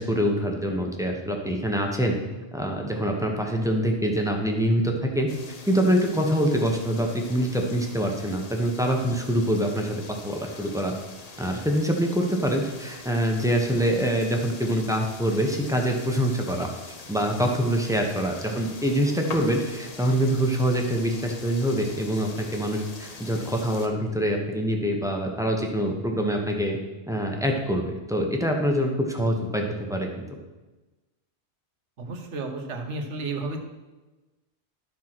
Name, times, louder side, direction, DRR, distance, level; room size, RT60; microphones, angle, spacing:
voice 1, 0.0-2.1 2.5-5.3 5.7-10.9 11.4-16.7 17.1-26.8 27.1-30.2, equal, 5° right, 1 dB, 1.1 m, -25 dB
sound 1, 5.3-23.9, left 3 dB, 40° left, 0.9 m, -43 dB
voice 2, 32.0-33.7, right 3 dB, 85° right, 4 dB, 1.4 m, -32 dB
12.0 x 4.6 x 6.1 m, 1.2 s
omnidirectional pair, 1.2 m